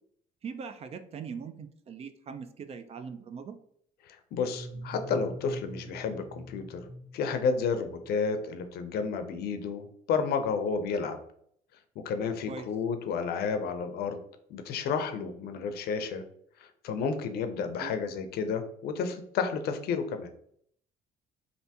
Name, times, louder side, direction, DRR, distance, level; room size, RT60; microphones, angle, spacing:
voice 1, 0.4-3.6 12.5-12.7 17.8-17.9, right 6 dB, 40° right, 9 dB, 0.4 m, -41 dB
voice 2, 4.1-6.8 7.1-11.2 12.0-14.2 14.5-16.2 16.8-20.3, left 5 dB, 70° left, 8 dB, 0.5 m, -31 dB
sound 1, 4.4-8.1, equal, 10° right, 0.8 m, -43 dB
3.3 x 2.6 x 2.8 m, 0.66 s
cardioid pair, 110°, 17 cm